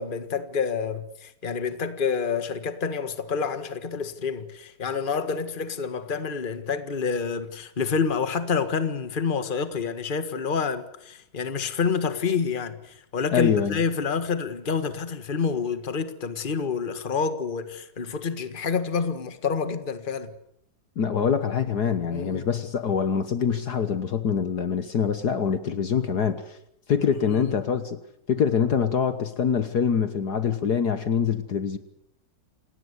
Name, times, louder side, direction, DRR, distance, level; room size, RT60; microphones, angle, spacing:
voice 1, 0.0-20.3 22.1-22.5 27.1-27.5, left 5 dB, 30° left, 1.6 m, -28 dB
voice 2, 13.3-13.8 21.0-26.6 26.9-28.0 28.3-31.8, left 7 dB, 55° left, 1.8 m, -24 dB
28.0 x 18.5 x 8.2 m
omnidirectional pair, 2.1 m